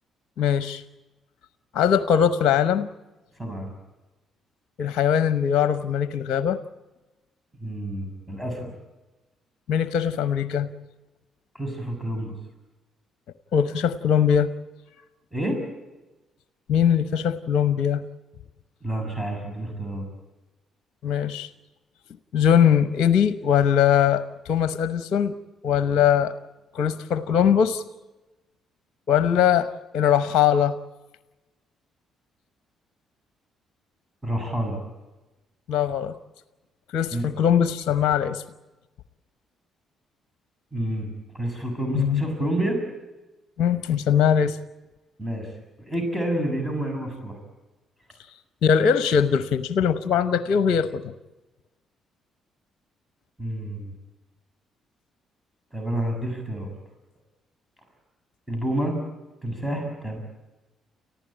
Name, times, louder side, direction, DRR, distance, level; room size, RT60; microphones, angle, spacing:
voice 1, 0.4-0.8 1.7-2.9 4.8-6.6 9.7-10.7 13.5-14.5 16.7-18.0 21.0-21.5 22.3-25.3 25.6-26.3 26.7-27.8 29.1-29.7 29.9-30.8 35.7-36.2 36.9-38.4 41.9-42.2 43.6-44.6 48.6-51.1, left 8 dB, 60° left, 13 dB, 0.8 m, -21 dB
voice 2, 7.6-8.7 11.5-12.3 15.3-15.6 18.8-20.1 34.2-34.8 37.1-37.3 40.7-42.8 45.2-45.5 45.8-47.4 53.4-53.9 55.7-56.7 58.5-59.0 59.4-60.2, right 1 dB, 5° right, 4 dB, 6.9 m, -29 dB
29.5 x 15.0 x 9.0 m, 1.1 s
hypercardioid pair, 45°, 0 cm